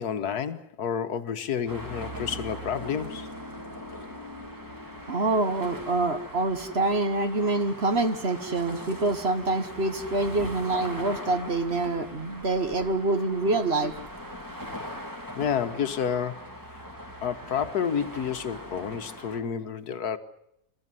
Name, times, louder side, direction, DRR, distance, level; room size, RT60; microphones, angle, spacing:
voice 1, 0.0-3.3 14.9-15.0 15.3-16.5 17.2-20.2, left 7 dB, 70° left, 1.6 m, -30 dB
sound 1, 1.7-19.4, equal, 10° right, 3.1 m, -40 dB
voice 2, 5.1-13.9, right 2 dB, 40° right, 1.5 m, -26 dB
27.5 x 13.5 x 9.6 m
omnidirectional pair, 1.7 m